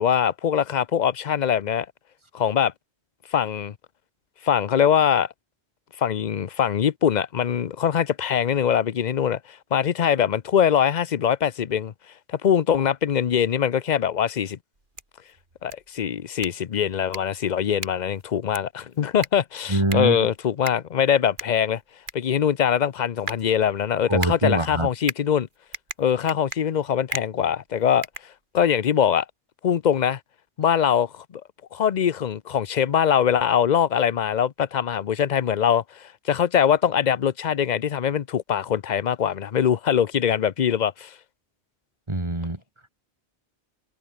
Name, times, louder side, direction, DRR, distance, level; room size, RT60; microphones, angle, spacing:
voice 1, 0.0-1.9 2.3-2.7 3.3-3.7 4.4-5.3 6.0-11.9 12.3-14.6 15.6-21.8 22.1-25.5 26.0-28.1 28.5-29.3 29.6-30.2 30.6-31.4 31.7-41.1, left 8 dB, 50° left, 0.7 m, -22 dB
sound 1, 14.7-28.9, right 2 dB, 50° right, 3.7 m, -39 dB
voice 2, 19.7-20.3 24.1-24.9 42.1-42.6, right 2 dB, 25° right, 2.6 m, -23 dB
omnidirectional pair, 1.1 m